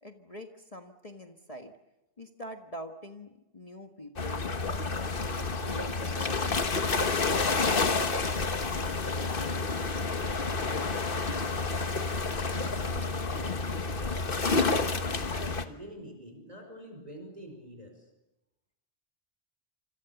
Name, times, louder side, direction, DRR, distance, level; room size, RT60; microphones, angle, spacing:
voice 1, 0.0-1.7 2.2-6.6, equal, 30° left, 5 dB, 1.5 m, -44 dB
sound 1, 4.2-15.6, left 3 dB, 50° left, 1.6 m, -29 dB
voice 2, 9.6-18.1, right 1 dB, 35° right, 4 dB, 5.2 m, -49 dB
27.5 x 26.0 x 7.1 m, 0.96 s
omnidirectional pair, 1.2 m